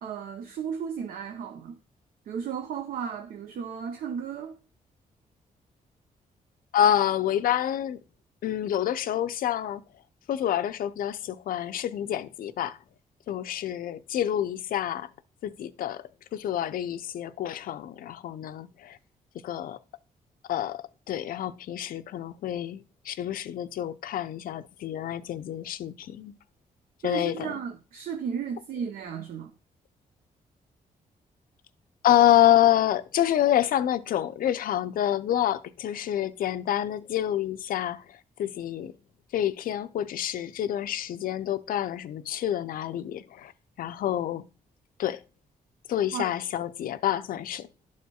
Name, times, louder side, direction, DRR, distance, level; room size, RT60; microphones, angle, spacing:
voice 1, 0.0-1.8 2.3-4.6 27.0-29.5 46.1-46.3, right 7 dB, 80° right, 0.7 m, -34 dB
voice 2, 6.7-8.0 8.4-9.8 10.3-12.8 13.3-15.1 15.4-16.0 16.3-19.0 19.4-19.8 20.5-26.3 27.0-27.5 32.0-38.9 39.3-43.5 43.8-44.5 45.0-45.2 45.9-47.7, left 11 dB, 75° left, 0.5 m, -27 dB
12.0 x 4.3 x 2.3 m
cardioid pair, 115°, 15 cm